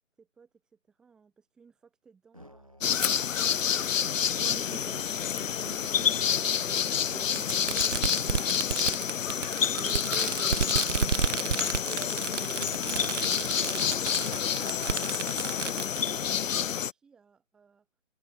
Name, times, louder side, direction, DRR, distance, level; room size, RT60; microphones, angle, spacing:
voice 1, 0.0-3.6 15.0-17.9, right 5 dB, ahead, 2.3 m, -61 dB
Musical instrument, 2.3-15.9, equal, 25° right, 0.7 m, -55 dB
sound 1, 2.8-16.9, left 8 dB, 70° left, 0.6 m, -29 dB
Fireworks, 3.0-3.1 4.2-4.3 5.6-5.7 7.4-16.1, right 6 dB, 60° right, 0.8 m, -32 dB
voice 2, 4.4-9.3 9.7-14.3, right 3 dB, 90° right, 4.9 m, -47 dB
hypercardioid pair, 175°, 41 cm